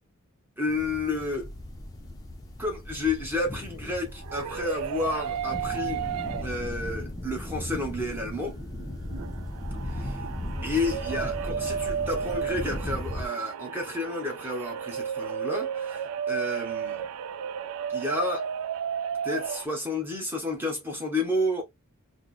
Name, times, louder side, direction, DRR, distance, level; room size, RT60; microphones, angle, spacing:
voice 1, 0.6-1.5 2.6-6.0 6.4-8.6 9.9-10.2 10.6-17.0 17.9-18.5 19.2-21.6, left 2 dB, 10° right, 1.0 m, -31 dB
sound 1, 0.7-13.3, left 1 dB, 15° left, 0.6 m, -37 dB
sound 2, 4.0-6.9 7.3-7.4 8.0-19.7, right 8 dB, 80° right, 0.3 m, -33 dB
3.2 x 2.1 x 3.8 m
head